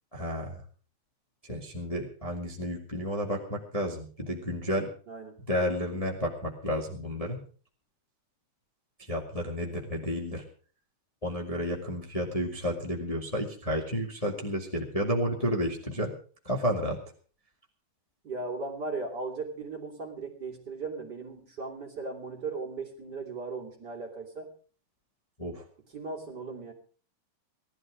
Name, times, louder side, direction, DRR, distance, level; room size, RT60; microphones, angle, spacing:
voice 1, 0.1-0.6 1.4-4.9 5.5-7.4 9.0-10.4 11.2-16.1 16.4-17.0 25.4-25.6, equal, 15° left, 0 dB, 1.8 m, -31 dB
voice 2, 18.2-24.5 25.9-26.7, right 3 dB, 35° right, 1 dB, 3.0 m, -37 dB
18.0 x 12.5 x 4.9 m, 0.42 s
omnidirectional pair, 3.4 m